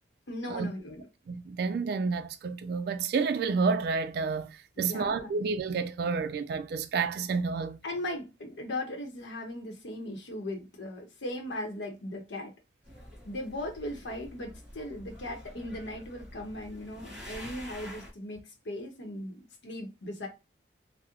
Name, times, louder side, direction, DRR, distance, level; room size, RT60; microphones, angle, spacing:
voice 1, 0.3-1.1 4.8-5.3 7.8-12.5 13.2-20.3, left 1 dB, 80° left, 0.8 m, -38 dB
voice 2, 1.3-7.8, right 4 dB, 60° right, 0.3 m, -30 dB
sound 1, 12.8-18.1, left 1 dB, 5° right, 1.1 m, -47 dB
3.6 x 2.0 x 2.8 m
head